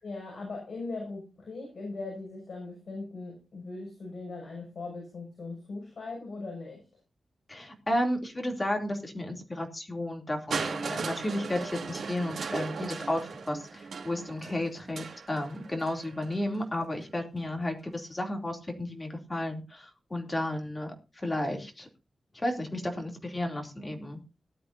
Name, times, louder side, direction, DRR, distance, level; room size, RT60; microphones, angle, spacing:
voice 1, 0.0-6.8, left 3 dB, 55° left, 0 dB, 6.6 m, -39 dB
voice 2, 7.5-21.9 22.3-24.2, left 1 dB, 20° left, 3 dB, 2.9 m, -33 dB
Crushing, 10.5-16.4 17.4-17.5, right 5 dB, 70° right, 2.8 m, -37 dB
18.5 x 12.0 x 2.7 m, 0.30 s
wide cardioid pair, 175°, 0 cm